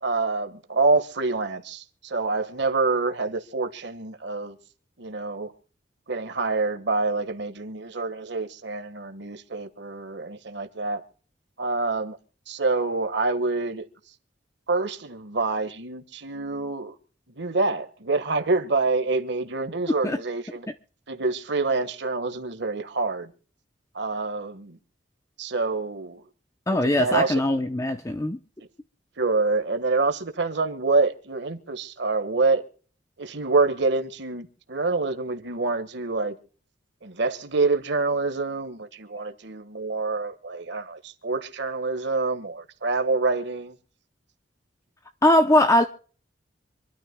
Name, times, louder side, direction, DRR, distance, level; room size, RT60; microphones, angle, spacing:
voice 1, 0.0-4.6 5.0-5.5 6.1-11.0 11.6-12.2 12.5-13.8 14.7-16.9 17.4-20.7 21.1-23.3 23.9-24.8 25.4-26.2 26.7-27.4 28.6-28.7 29.2-32.6 33.2-36.4 37.0-43.7, right 3 dB, 70° right, 1.5 m, -26 dB
voice 2, 26.7-28.4 45.2-45.8, left 1 dB, 15° left, 0.7 m, -20 dB
26.5 x 12.5 x 2.2 m
head